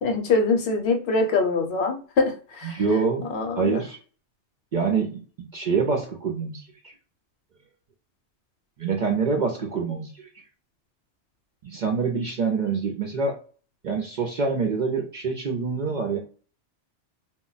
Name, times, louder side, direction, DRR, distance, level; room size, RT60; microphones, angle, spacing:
voice 1, 0.0-2.8 3.3-3.8, left 3 dB, 65° left, 4 dB, 0.9 m, -24 dB
voice 2, 2.6-3.3 3.6-4.0 4.7-6.6 8.8-10.3 11.6-13.4 13.8-16.2, right 5 dB, 60° right, 2 dB, 0.5 m, -26 dB
2.1 x 2.1 x 3.8 m, 0.39 s
omnidirectional pair, 1.2 m